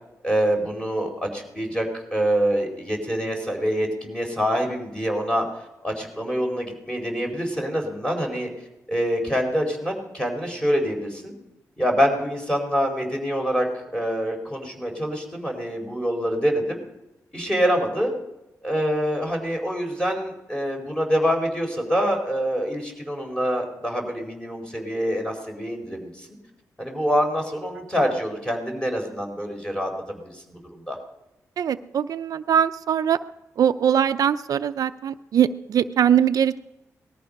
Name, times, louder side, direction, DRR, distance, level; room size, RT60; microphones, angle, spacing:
voice 1, 0.2-5.5 5.8-8.5 8.9-11.3 11.8-16.8 17.3-18.1 18.6-26.3 26.8-31.0, equal, 15° left, 2 dB, 4.6 m, -25 dB
voice 2, 31.6-33.2 33.6-36.6, right 9 dB, 75° right, 11 dB, 0.5 m, -21 dB
19.5 x 13.5 x 5.3 m, 0.94 s
cardioid pair, 80°, 6 cm